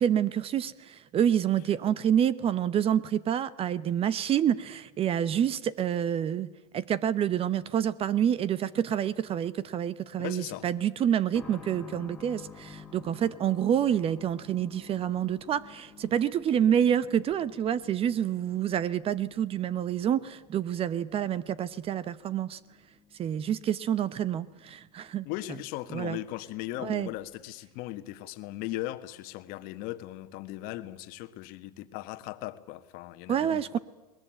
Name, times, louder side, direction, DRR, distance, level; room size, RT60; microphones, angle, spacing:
voice 1, 0.0-22.6 23.2-25.3 25.9-26.2 26.8-27.1 33.3-33.8, right 9 dB, 30° right, 18 dB, 0.8 m, -28 dB
voice 2, 10.2-10.7 25.2-33.8, left 16 dB, 50° left, 11 dB, 1.5 m, -38 dB
sound 1, 11.3-25.8 26.0-26.1 27.1-27.2, left 6 dB, 5° left, 2.7 m, -52 dB
21.0 x 20.5 x 9.0 m, 1.1 s
hypercardioid pair, 115°, 20 cm